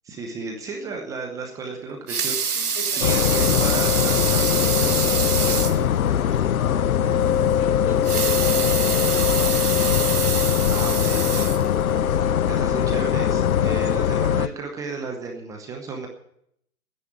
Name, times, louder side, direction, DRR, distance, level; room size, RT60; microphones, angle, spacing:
voice 1, 0.0-5.2 5.4-5.9 10.7-11.5 12.5-16.1, right 4 dB, 5° right, 2 dB, 0.8 m, -34 dB
Water tap faucet / Sink (filling or washing) / Liquid, 1.9-5.8 6.3-6.4 6.7-6.8 7.9-12.1 12.6-12.7, right 6 dB, 90° right, 1.5 m, -26 dB
voice 2, 2.5-3.4 5.6-9.5 12.1-12.8, left 2 dB, 40° left, 1 dB, 5.3 m, -40 dB
sound 1, 3.0-14.5, left 9 dB, 70° left, 0.7 m, -21 dB
10.0 x 10.0 x 9.8 m, 0.73 s
hypercardioid pair, 145°, 45 cm